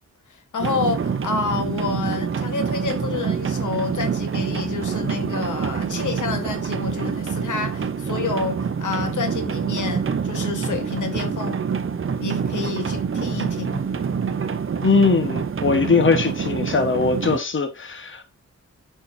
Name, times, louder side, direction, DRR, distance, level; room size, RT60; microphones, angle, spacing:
voice 1, 0.3-11.6 12.2-13.9, left 5 dB, 90° left, 1.4 m, -29 dB
sound 1, 0.6-17.4, right 6 dB, 45° right, 0.7 m, -26 dB
voice 2, 14.8-18.3, left 4 dB, 40° left, 1.2 m, -20 dB
8.6 x 5.7 x 2.7 m
wide cardioid pair, 125°, 30 cm